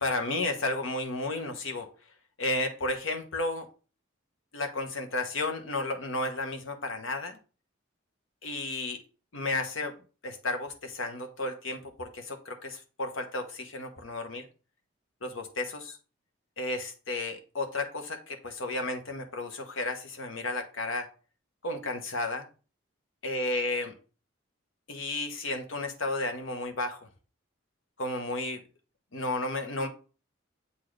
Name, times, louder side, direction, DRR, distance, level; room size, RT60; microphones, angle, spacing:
voice 1, 0.0-1.9 2.4-3.7 4.5-7.4 8.4-9.0 9.3-10.0 10.2-14.5 15.2-15.9 16.6-21.1 21.6-22.5 23.2-23.9 24.9-27.1 28.0-28.6 29.1-29.9, left 2 dB, 80° left, 6 dB, 1.0 m, -33 dB
7.4 x 4.0 x 3.2 m, 0.36 s
head